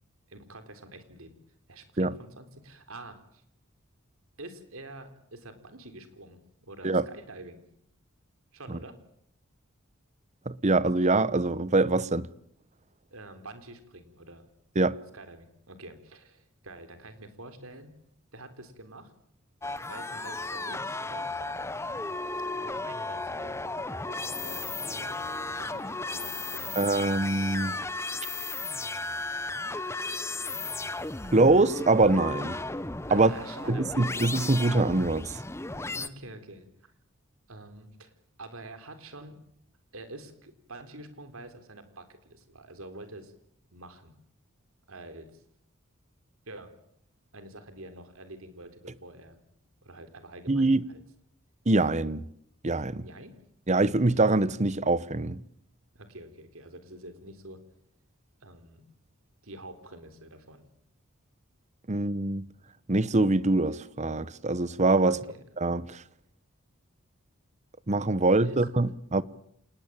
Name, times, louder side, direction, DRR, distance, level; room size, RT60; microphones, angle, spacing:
voice 1, 0.3-1.4 1.7-3.4 4.4-7.6 8.5-9.0 13.1-14.4 15.1-17.9 18.3-19.1 19.8-21.6 22.6-26.8 33.1-34.3 36.0-36.9 37.5-38.1 38.4-39.4 39.9-43.3 43.7-44.1 44.9-45.4 46.5-46.7 47.3-49.4 49.8-51.0 53.0-53.4 55.9-57.6 58.4-58.9 59.4-60.6 65.0-65.4 68.2-68.6, right 2 dB, 85° right, 3.8 m, -47 dB
voice 2, 10.5-12.3 14.8-15.0 26.8-27.8 31.3-32.6 33.1-33.3 33.7-35.4 50.5-50.9 51.7-52.2 52.6-53.0 53.7-55.4 61.9-62.5 62.9-65.2 65.6-66.0 67.9-69.2, right 2 dB, 35° right, 0.9 m, -24 dB
sound 1, 19.6-36.1, left 3 dB, 15° left, 0.9 m, -35 dB
27.5 x 19.5 x 8.9 m
head